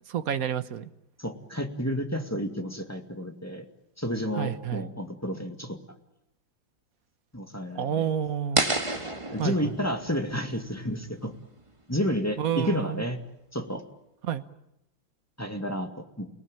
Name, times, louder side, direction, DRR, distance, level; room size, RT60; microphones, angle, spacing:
voice 1, 0.1-0.9 4.4-4.9 7.7-8.6 9.4-9.6 12.4-13.0 14.2-14.4, right 9 dB, 50° right, 12 dB, 1.4 m, -29 dB
voice 2, 1.2-3.7 4.0-5.8 7.3-8.1 9.3-11.3 11.9-13.2 13.5-13.8 15.4-16.3, equal, 10° left, 5 dB, 2.0 m, -31 dB
sound 1, 8.6-11.6, right 2 dB, 15° right, 1.8 m, -31 dB
29.5 x 18.5 x 9.0 m, 0.85 s
omnidirectional pair, 2.1 m